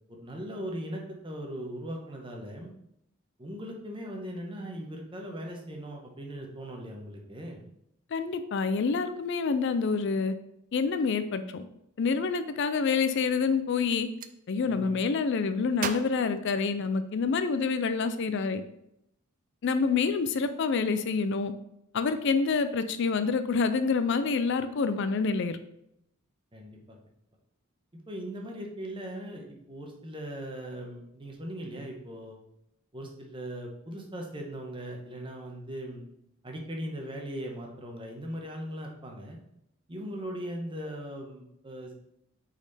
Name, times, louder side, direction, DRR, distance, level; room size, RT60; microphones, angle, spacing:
voice 1, 0.1-2.7 3.4-7.6 14.7-14.9 26.5-27.0 27.9-32.4 32.9-36.0 36.4-39.4 39.9-41.9, equal, 25° right, 1 dB, 1.0 m, -39 dB
voice 2, 8.1-10.3 10.7-11.6 12.0-14.1 14.5-18.6 19.6-21.5 21.9-25.6, left 5 dB, 55° left, 11 dB, 0.4 m, -27 dB
Gunshot gunfire, 13.7-14.4 15.8-17.2, right 7 dB, 40° right, 0.3 m, -38 dB
5.9 x 4.2 x 4.1 m, 0.78 s
head